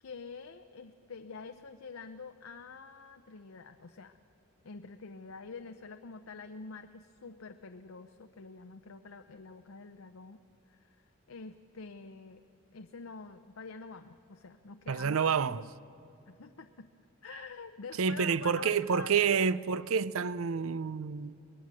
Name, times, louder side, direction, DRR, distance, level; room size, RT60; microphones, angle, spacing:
voice 1, 0.0-4.2 4.6-10.4 10.7-12.4 12.7-15.7 16.3-16.9 17.2-19.5, left 4 dB, 85° left, 0.7 m, -47 dB
voice 2, 14.9-15.6 18.0-21.4, right 6 dB, 85° right, 0.5 m, -28 dB
23.5 x 20.0 x 7.5 m
head